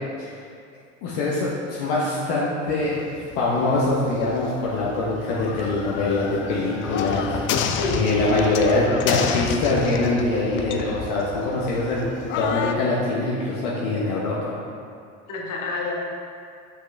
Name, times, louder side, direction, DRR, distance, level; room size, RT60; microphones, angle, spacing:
voice 1, 1.0-3.0 3.4-7.5 7.9-12.0 12.4-14.5, left 2 dB, 65° left, -6 dB, 1.2 m, -23 dB
sound 1, 2.7-12.7, left 7 dB, 35° left, 0.4 m, -31 dB
Bowed string instrument, 5.2-9.3, left 2 dB, 15° left, 0.9 m, -37 dB
voice 2, 7.5-8.1 15.3-16.0, left 2 dB, 50° left, -2 dB, 1.4 m, -28 dB
5.9 x 5.9 x 3.4 m, 2.3 s
hypercardioid pair, 75°, 37 cm